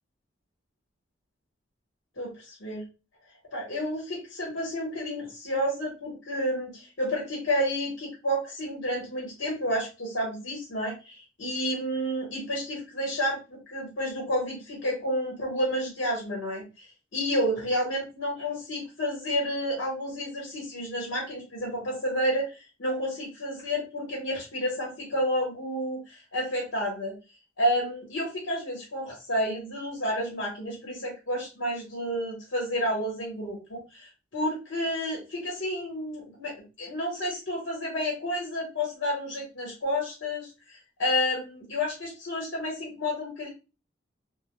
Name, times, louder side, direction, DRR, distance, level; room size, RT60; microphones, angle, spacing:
voice 1, 2.2-2.8 3.5-27.1 27.6-43.5, equal, 75° left, -3 dB, 0.9 m, -30 dB
2.1 x 2.1 x 2.9 m, 0.30 s
head